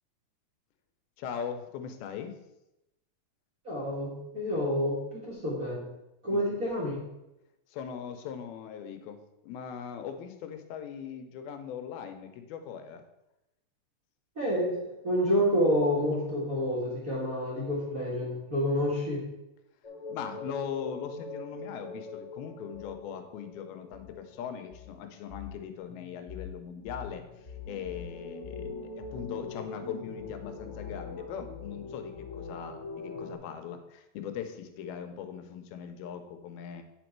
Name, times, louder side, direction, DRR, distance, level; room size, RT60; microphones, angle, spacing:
voice 1, 1.2-2.4 6.3-6.5 7.7-9.2 9.4-13.0 20.1-27.2 27.7-36.8, left 8 dB, 85° left, 7 dB, 2.6 m, -40 dB
voice 2, 3.6-5.9 6.2-7.0 14.3-14.8 15.0-19.2, equal, 35° right, -6 dB, 1.4 m, -28 dB
sound 1, 19.8-25.6 25.9-33.3, left 4 dB, 35° left, 1.2 m, -42 dB
9.2 x 5.2 x 4.6 m, 0.91 s
omnidirectional pair, 4.3 m